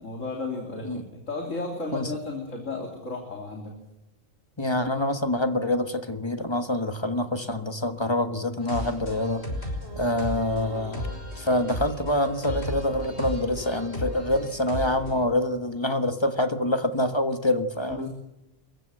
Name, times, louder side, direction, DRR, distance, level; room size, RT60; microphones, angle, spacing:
voice 1, 0.0-3.7 17.9-18.1, left 3 dB, 90° left, 1 dB, 3.5 m, -34 dB
voice 2, 4.6-9.4 9.9-11.1 11.4-18.1, left 1 dB, 20° left, 8 dB, 1.4 m, -26 dB
sound 1, 8.6-15.2, left 1 dB, 55° left, 6.3 m, -35 dB
29.0 x 15.5 x 7.9 m, 0.94 s
omnidirectional pair, 1.3 m